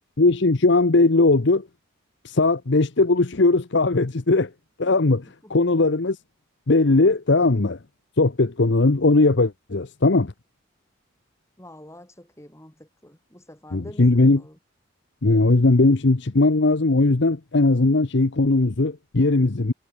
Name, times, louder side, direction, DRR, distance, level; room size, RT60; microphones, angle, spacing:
voice 1, 0.2-1.7 2.2-4.5 4.8-6.2 6.7-7.8 8.2-10.3 13.7-14.4 15.2-19.7, left 3 dB, 55° left, 0.9 m, -19 dB
voice 2, 11.6-14.6, left 1 dB, 15° left, 5.8 m, -46 dB
head